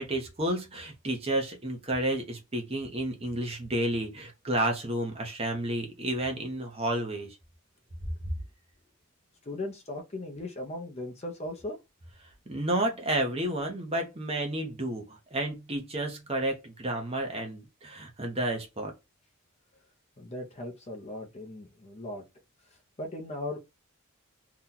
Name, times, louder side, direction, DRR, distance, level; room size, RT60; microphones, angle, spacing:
voice 1, 0.0-7.4 12.5-18.9, right 1 dB, 25° right, 0.8 m, -31 dB
voice 2, 9.4-11.8 20.2-22.2 23.0-23.6, left 1 dB, 30° left, 0.6 m, -38 dB
2.8 x 2.3 x 3.7 m
head